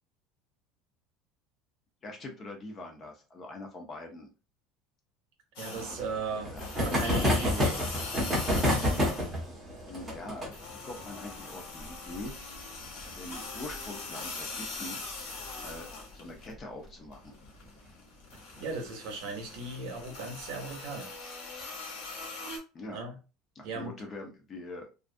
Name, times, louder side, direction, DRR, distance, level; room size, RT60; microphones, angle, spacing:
voice 1, 2.0-4.3 6.5-6.9 9.8-12.3 13.2-15.0 15.6-17.3 22.7-23.0 23.6-24.9, left 2 dB, 20° left, 0.5 m, -43 dB
sound 1, 5.6-6.2 6.5-9.4 9.8-16.5 16.9-22.6, left 3 dB, 60° left, 0.9 m, -41 dB
voice 2, 5.6-7.8 18.6-21.1 22.9-23.2 23.6-23.9, right 4 dB, 60° right, 0.7 m, -37 dB
sound 2, 5.7-14.9 15.2-15.3 15.5-15.6 15.9-16.0 17.4-17.7 18.3-18.8, left 1 dB, 10° right, 0.8 m, -31 dB
2.4 x 2.3 x 2.4 m
cardioid pair, 180°, 0 cm